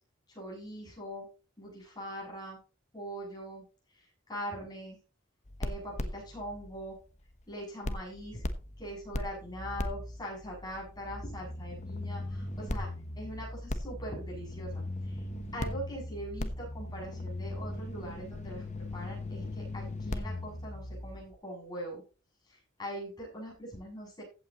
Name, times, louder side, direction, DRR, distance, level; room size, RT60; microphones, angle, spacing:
voice 1, 0.3-1.3 1.6-2.6 2.9-3.6 3.9-5.0 5.6-7.0 7.5-8.4 8.8-12.9 13.2-15.2 15.5-22.0 22.5-24.2, equal, 20° left, -2 dB, 7.5 m, -42 dB
sound 1, 5.5-7.5 7.8-21.3, left 1 dB, 40° left, 1.1 m, -38 dB
15.5 x 8.7 x 3.1 m, 0.33 s
head